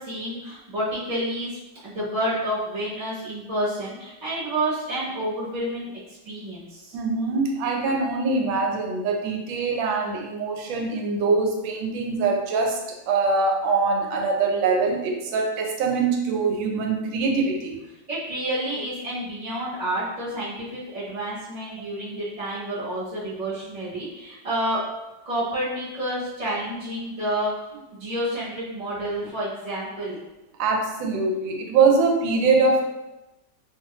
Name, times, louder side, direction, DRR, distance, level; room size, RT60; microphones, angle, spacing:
voice 1, 0.0-7.0 18.1-24.8 25.2-30.2, right 1 dB, 30° right, -10 dB, 0.9 m, -29 dB
voice 2, 6.9-17.8 30.6-32.8, right 4 dB, 85° right, 2 dB, 1.3 m, -23 dB
2.8 x 2.4 x 2.9 m, 0.98 s
omnidirectional pair, 2.0 m